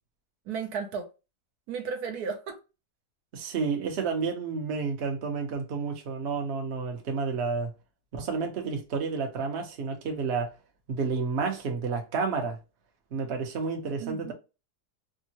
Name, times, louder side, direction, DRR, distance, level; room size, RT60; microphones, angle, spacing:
voice 1, 0.5-1.1 1.7-2.6 14.0-14.3, right 6 dB, 70° right, 1.1 m, -34 dB
voice 2, 3.3-7.7 8.1-10.5 10.9-12.6 13.1-14.3, right 5 dB, 50° right, 0.8 m, -30 dB
3.5 x 2.0 x 2.7 m
omnidirectional pair, 1.8 m